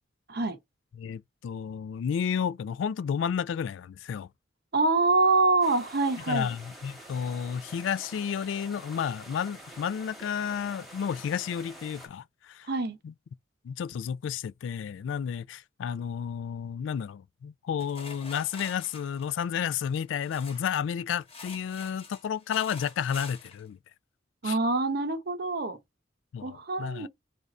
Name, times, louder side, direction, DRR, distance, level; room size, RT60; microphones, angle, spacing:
voice 1, 1.0-4.3 6.3-12.7 13.0-13.1 13.6-23.8 24.4-24.6 26.3-27.1, left 7 dB, 85° left, 0.3 m, -32 dB
voice 2, 4.7-6.5 12.7-13.0 24.4-25.8 26.4-27.1, right 3 dB, 55° right, 0.7 m, -25 dB
sound 1, 5.6-12.1, right 1 dB, ahead, 1.2 m, -47 dB
sound 2, 17.8-20.8 21.2-23.6, left 3 dB, 30° left, 1.2 m, -46 dB
3.4 x 2.6 x 4.1 m
head